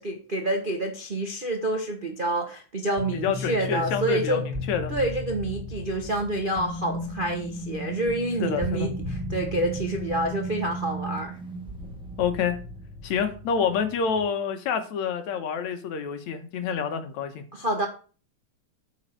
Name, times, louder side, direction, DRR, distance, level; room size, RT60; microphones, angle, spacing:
voice 1, 0.0-4.4 4.9-11.4 17.5-17.9, right 1 dB, 75° right, 3 dB, 0.4 m, -28 dB
sound 1, 3.0-14.3, equal, 5° right, 1.0 m, -35 dB
voice 2, 3.2-4.9 8.4-8.9 12.2-12.6 13.0-17.4, left 6 dB, 70° left, 8 dB, 2.6 m, -28 dB
8.8 x 5.5 x 7.6 m, 0.37 s
omnidirectional pair, 3.4 m